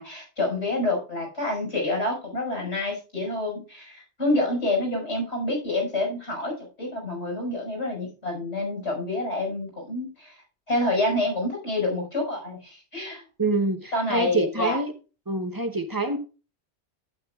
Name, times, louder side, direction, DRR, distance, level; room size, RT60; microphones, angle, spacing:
voice 1, 0.0-10.4 10.7-13.2 13.9-14.8, left 2 dB, 85° left, 5.8 m, -28 dB
voice 2, 13.4-14.9 15.3-16.2, right 2 dB, 20° right, 0.9 m, -26 dB
11.5 x 9.2 x 2.4 m
omnidirectional pair, 1.1 m